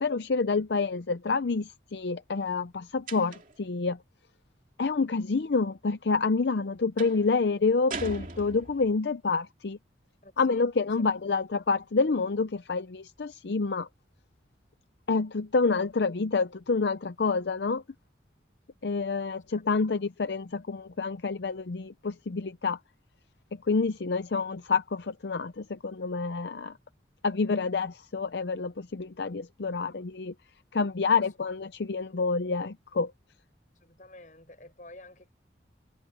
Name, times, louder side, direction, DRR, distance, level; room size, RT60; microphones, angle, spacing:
voice 1, 0.0-4.0 4.8-9.8 10.4-13.9 15.1-17.8 18.8-22.8 23.7-26.7 27.2-30.3 30.7-33.1, left 4 dB, 70° left, 0.6 m, -28 dB
sound 1, 3.1-3.7 7.0-7.3 7.9-9.0, right 3 dB, 45° right, 2.8 m, -39 dB
voice 2, 10.2-10.6 19.5-19.6 33.8-35.3, left 2 dB, 45° left, 6.3 m, -50 dB
head